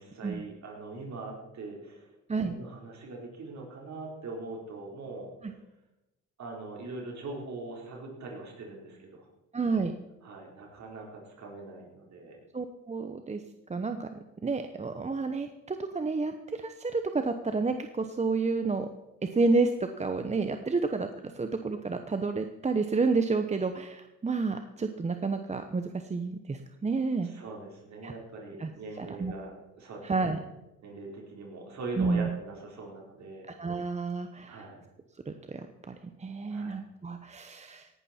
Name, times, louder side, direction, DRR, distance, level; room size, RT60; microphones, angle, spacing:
voice 1, 0.0-2.1 2.4-5.6 6.4-9.3 10.2-12.4 27.2-30.4 30.8-33.5 33.7-33.8 34.5-34.8 36.5-36.8, right 3 dB, 65° right, -1 dB, 4.1 m, -42 dB
voice 2, 9.5-9.9 12.5-13.4 13.7-14.1 14.4-18.9 19.2-27.3 28.0-28.1 28.6-28.7 29.0-29.3 30.0-30.4 32.0-32.3 33.6-34.7 35.3-37.9, right 4 dB, 20° right, 7 dB, 0.9 m, -30 dB
18.0 x 11.5 x 4.4 m, 0.97 s
cardioid pair, 90°, 30 cm